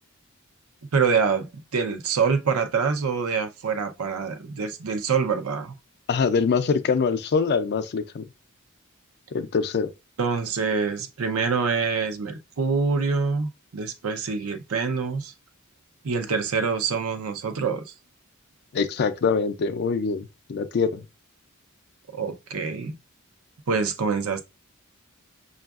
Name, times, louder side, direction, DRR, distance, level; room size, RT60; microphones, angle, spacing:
voice 1, 0.9-5.7 10.2-15.3 16.0-17.9 22.1-23.0 23.7-24.4, right 5 dB, 85° right, 0.6 m, -25 dB
voice 2, 6.1-8.3 9.3-9.9 18.7-21.1, left 5 dB, 50° left, 0.4 m, -24 dB
5.9 x 2.4 x 2.3 m
head